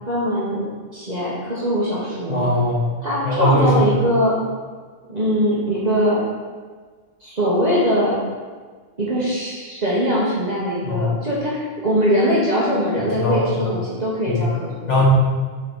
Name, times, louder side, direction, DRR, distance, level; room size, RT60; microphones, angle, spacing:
voice 1, 0.1-2.5 3.0-4.4 5.1-6.2 7.2-8.2 9.0-15.0, equal, 35° right, -7 dB, 1.3 m, -21 dB
voice 2, 2.3-3.0 3.2-4.0 10.8-11.2 13.2-13.7 14.3-14.5 14.9-15.0, left 1 dB, 70° left, -5 dB, 2.0 m, -20 dB
7.3 x 3.9 x 4.6 m, 1.5 s
omnidirectional pair, 1.3 m